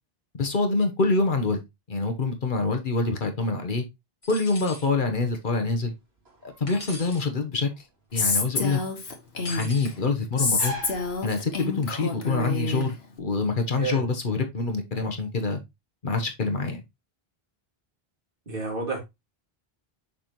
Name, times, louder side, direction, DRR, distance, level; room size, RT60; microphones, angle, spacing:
voice 1, 0.3-1.6 1.9-3.8 4.3-5.9 6.4-7.7 8.1-8.8 9.5-10.7 11.2-15.6 16.0-16.8, left 3 dB, 55° left, 1.2 m, -26 dB
sound 1, 4.2-4.9 6.7-7.3 9.4-9.9, left 2 dB, 30° left, 2.2 m, -40 dB
sound 2, 5.0-11.9, equal, 80° right, 2.9 m, -43 dB
Female speech woman speaking, 8.2-9.9 10.4-12.9, left 3 dB, 85° left, 1.6 m, -27 dB
voice 2, 18.5-19.0, right 4 dB, 60° right, 2.5 m, -30 dB
6.6 x 5.2 x 3.0 m
omnidirectional pair, 1.0 m